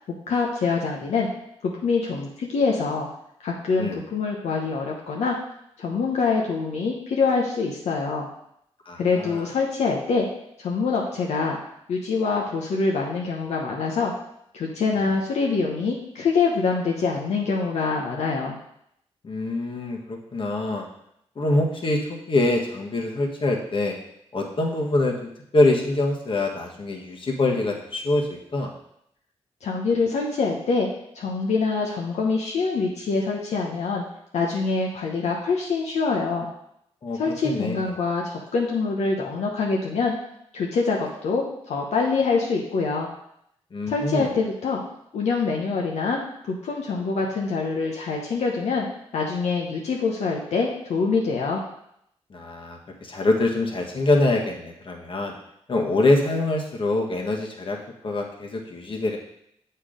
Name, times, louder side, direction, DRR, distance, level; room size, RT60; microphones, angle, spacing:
voice 1, 0.3-1.3 1.6-3.1 3.4-5.4 5.8-8.3 9.0-10.3 10.6-11.6 11.9-14.1 14.5-18.6 29.6-30.9 31.1-34.0 34.3-36.5 37.2-40.2 40.5-43.1 43.9-44.8 45.1-48.9 49.1-51.6, left 4 dB, 80° left, -1 dB, 1.0 m, -25 dB
voice 2, 8.8-9.5 14.9-15.1 19.2-20.8 21.3-23.9 24.3-28.7 37.0-37.2 37.4-37.8 43.7-44.3 52.3-55.3 55.7-57.8 58.0-59.2, left 2 dB, 50° left, 0 dB, 1.5 m, -24 dB
7.1 x 4.5 x 5.1 m, 0.75 s
cardioid pair, 65°, 11 cm